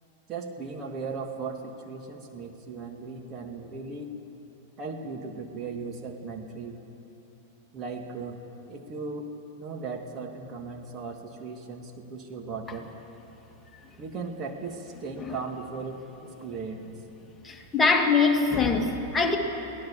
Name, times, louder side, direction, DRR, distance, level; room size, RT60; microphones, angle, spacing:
voice 1, 0.3-4.1 4.8-6.8 7.7-8.4 8.7-9.3 9.6-12.9 14.0-16.8, right 4 dB, 30° right, 3 dB, 2.1 m, -37 dB
voice 2, 17.4-19.4, left 4 dB, 15° left, 2 dB, 2.2 m, -23 dB
23.0 x 17.5 x 7.4 m, 3.0 s
figure-of-eight pair, 95°, 0 cm